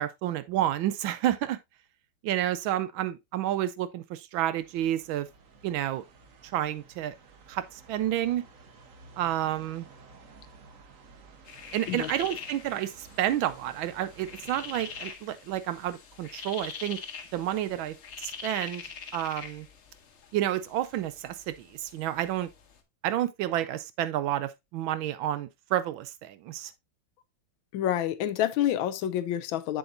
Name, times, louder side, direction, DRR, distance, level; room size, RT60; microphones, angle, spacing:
voice 1, 0.0-1.6 2.2-5.3 5.6-6.0 6.5-7.1 7.5-8.5 9.2-9.9 11.7-17.0 17.3-18.8 19.1-19.7 20.3-22.5 23.0-26.7, right 12 dB, 75° right, 1.3 m, -30 dB
sound 1, 4.6-15.1, right 4 dB, 50° right, 1.1 m, -53 dB
sound 2, 11.5-22.8, left 6 dB, 50° left, 0.8 m, -44 dB
voice 2, 27.7-29.8, left 11 dB, 75° left, 1.4 m, -28 dB
7.4 x 7.0 x 2.5 m
omnidirectional pair, 2.3 m